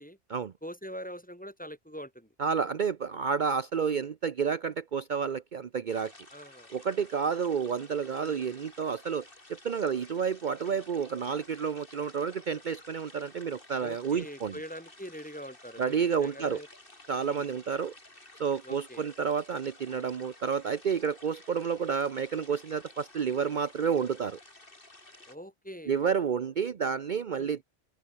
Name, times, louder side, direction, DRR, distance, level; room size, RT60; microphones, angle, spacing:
voice 1, 0.6-2.3 3.8-4.1 6.3-6.7 8.2-8.4 10.7-10.8 13.8-16.7 17.2-17.5 18.6-19.0 25.3-26.0 27.3-27.6, equal, 10° left, 2.1 m, -43 dB
voice 2, 2.4-6.1 6.7-14.5 15.8-16.6 17.1-17.9 18.4-24.4 25.9-27.6, right 6 dB, 50° right, 0.9 m, -30 dB
sound 1, 5.9-25.4, left 2 dB, 55° left, 4.3 m, -54 dB
open air
omnidirectional pair, 1.1 m